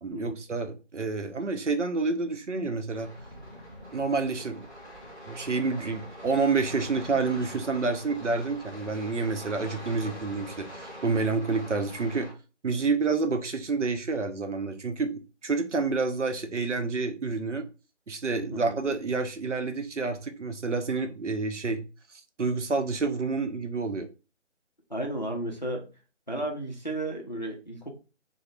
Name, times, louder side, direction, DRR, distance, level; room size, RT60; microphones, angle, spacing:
voice 1, 0.0-3.1 3.9-4.7 5.3-12.3 12.6-17.7 18.1-21.8 22.1-24.1, right 4 dB, 75° right, 6 dB, 0.6 m, -29 dB
sound 1, 2.9-12.3, equal, 40° right, 1.5 m, -44 dB
voice 2, 24.9-25.9 26.3-27.9, right 1 dB, 40° left, 1 dB, 0.4 m, -33 dB
2.9 x 2.1 x 3.0 m, 0.32 s
figure-of-eight pair, 160°, 37 cm